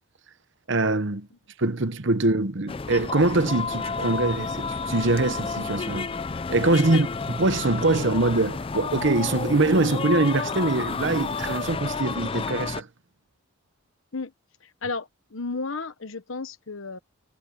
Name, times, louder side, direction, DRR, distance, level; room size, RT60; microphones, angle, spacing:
voice 1, 0.7-1.3 1.6-6.1 6.5-12.9, right 2 dB, 55° right, 1.0 m, -23 dB
sound 1, 2.7-12.8, left 4 dB, 25° left, 0.4 m, -31 dB
voice 2, 14.8-17.0, left 4 dB, 60° left, 1.1 m, -33 dB
head